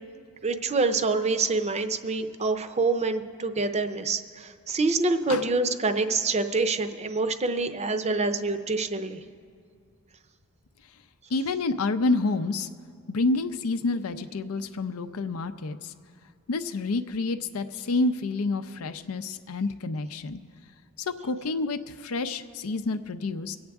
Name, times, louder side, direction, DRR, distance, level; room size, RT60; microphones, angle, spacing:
voice 1, 0.4-9.2, right 3 dB, 30° right, 9 dB, 0.6 m, -26 dB
voice 2, 11.3-12.7 13.1-15.9 16.5-20.4 21.0-23.6, left 3 dB, 90° left, 9 dB, 0.5 m, -28 dB
25.0 x 8.7 x 3.5 m, 2.2 s
head